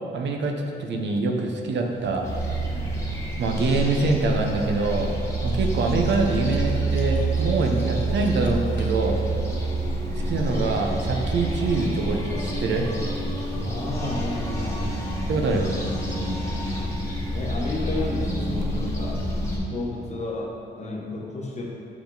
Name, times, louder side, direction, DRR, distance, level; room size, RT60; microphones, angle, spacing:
voice 1, 0.1-2.3 3.4-5.2 5.4-9.2 10.3-12.9 15.3-15.7, right 3 dB, 65° right, 2 dB, 0.8 m, -25 dB
sound 1, 0.8-1.1 1.7-20.2, right 2 dB, 45° right, 1.4 m, -37 dB
Cutlery silverware, 1.9-9.6, left 3 dB, 70° left, 0.8 m, -45 dB
sound 2, 2.2-19.6, right 1 dB, 15° left, 1.2 m, -28 dB
voice 2, 13.6-14.9 17.3-19.2 19.6-21.7, left 2 dB, 35° left, -1 dB, 1.1 m, -32 dB
7.0 x 4.7 x 3.9 m, 2.6 s
cardioid pair, 90°, 20 cm